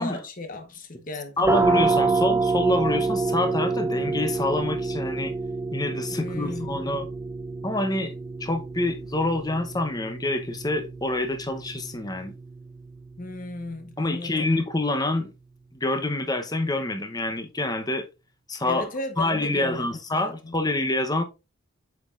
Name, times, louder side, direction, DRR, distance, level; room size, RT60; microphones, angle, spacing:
voice 1, 0.0-1.5 6.1-6.8 13.2-14.6 18.6-20.5, left 2 dB, 40° left, 1.0 m, -35 dB
voice 2, 1.4-5.3 5.7-7.1 7.6-8.1 8.4-12.3 14.0-15.3 15.7-18.1 18.5-18.9 19.2-21.2, left 2 dB, 20° left, 0.8 m, -26 dB
sound 1, 1.4-12.9, right 3 dB, 15° right, 0.5 m, -28 dB
7.7 x 5.6 x 2.5 m
head